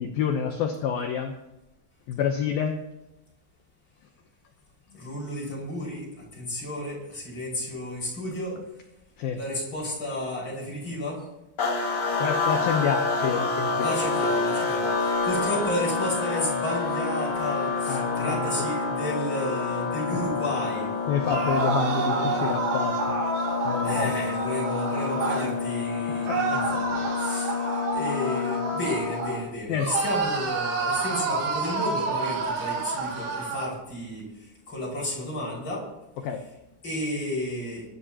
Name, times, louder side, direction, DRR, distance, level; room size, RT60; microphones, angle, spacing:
voice 1, 0.0-1.3 2.1-2.8 9.2-9.4 12.2-14.0 17.9-18.5 21.1-23.2 23.6-24.1 24.9-25.0 26.3-26.6 26.9-27.5 29.7-29.9 32.5-32.7 36.2-36.4, left 7 dB, 80° left, 4 dB, 2.1 m, -28 dB
voice 2, 5.0-8.6 9.3-11.3 13.8-20.9 21.9-22.5 23.8-35.8 36.8-37.8, left 1 dB, 25° left, -4 dB, 6.1 m, -32 dB
sound 1, 11.6-29.4, left 4 dB, 45° left, 2.4 m, -28 dB
sound 2, 21.2-25.5 26.3-29.4 29.8-33.7, right 4 dB, 90° right, 6.2 m, -29 dB
23.0 x 13.0 x 3.0 m, 0.91 s
omnidirectional pair, 5.5 m